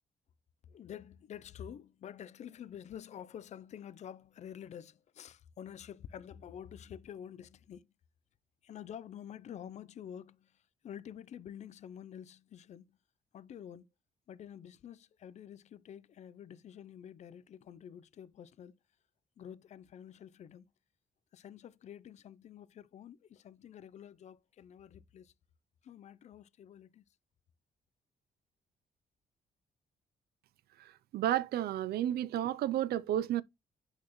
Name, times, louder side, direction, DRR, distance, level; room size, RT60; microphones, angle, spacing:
voice 1, 0.7-7.9 8.6-13.0 13.3-13.9 14.3-18.8 19.4-20.7 21.3-25.3 25.8-27.1, left 9 dB, 45° left, 0.4 m, -49 dB
voice 2, 30.8-33.4, right 12 dB, 80° right, 0.4 m, -32 dB
8.5 x 4.1 x 3.0 m
cardioid pair, 165°, 16 cm